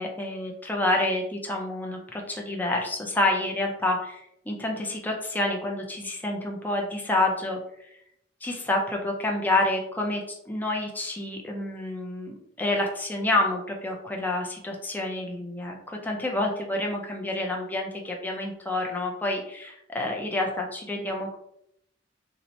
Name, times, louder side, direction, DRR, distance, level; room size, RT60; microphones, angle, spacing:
voice 1, 0.0-8.0 8.4-21.3, left 2 dB, 10° left, 0 dB, 0.4 m, -28 dB
2.8 x 2.1 x 4.0 m, 0.74 s
head